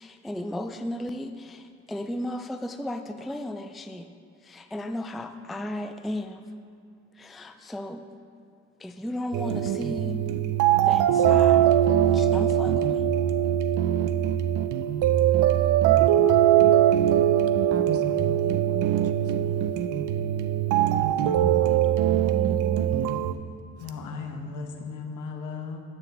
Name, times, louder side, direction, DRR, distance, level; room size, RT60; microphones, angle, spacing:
voice 1, 0.0-4.1 4.4-6.4 7.2-8.0 8.8-10.2 10.8-11.8 12.1-13.0, left 1 dB, ahead, 8 dB, 0.3 m, -35 dB
sound 1, 9.3-23.3, right 11 dB, 85° right, 0.5 m, -22 dB
voice 2, 17.7-19.8 21.2-23.4, right 4 dB, 50° right, 7 dB, 0.8 m, -38 dB
voice 3, 23.8-25.8, left 4 dB, 80° left, 4 dB, 1.1 m, -36 dB
9.3 x 8.7 x 3.5 m, 2.5 s
cardioid pair, 90°, 30 cm